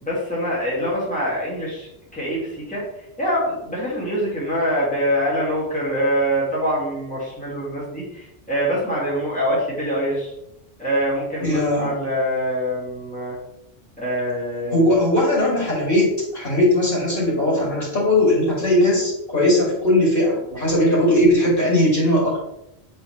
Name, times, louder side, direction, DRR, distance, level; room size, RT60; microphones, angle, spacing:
voice 1, 0.0-2.8 3.2-10.3 10.8-13.4 14.0-15.0 20.8-21.2, equal, 5° left, -7 dB, 2.0 m, -24 dB
voice 2, 11.4-11.9 14.7-22.4, left 1 dB, 55° left, -6 dB, 2.9 m, -19 dB
7.6 x 4.4 x 3.2 m, 0.84 s
omnidirectional pair, 1.1 m